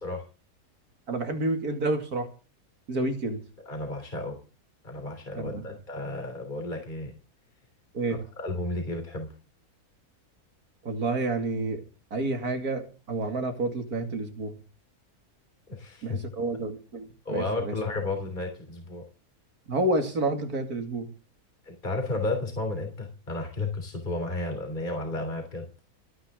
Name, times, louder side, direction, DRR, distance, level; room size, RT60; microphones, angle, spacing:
voice 1, 1.1-2.3 2.9-3.4 5.4-5.6 7.9-8.2 10.8-11.8 12.1-14.6 16.0-17.7 19.7-21.1, right 2 dB, 75° right, 5 dB, 2.8 m, -29 dB
voice 2, 3.7-4.4 4.8-7.1 8.1-9.3 15.7-16.2 17.3-19.0 21.6-25.7, left 2 dB, 30° left, 3 dB, 3.5 m, -32 dB
28.5 x 9.7 x 3.7 m, 0.35 s
omnidirectional pair, 1.6 m